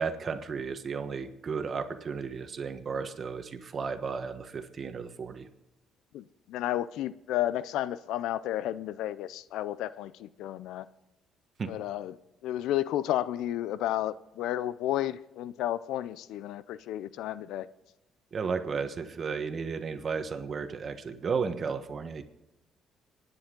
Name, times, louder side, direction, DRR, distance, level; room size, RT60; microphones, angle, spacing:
voice 1, 0.0-5.5 11.6-11.7 18.3-22.2, right 5 dB, 40° right, 1.3 m, -34 dB
voice 2, 6.1-10.9 11.7-12.2 12.4-17.7, left 13 dB, 85° left, 0.4 m, -32 dB
25.0 x 9.8 x 3.8 m
cardioid pair, 105°, 0 cm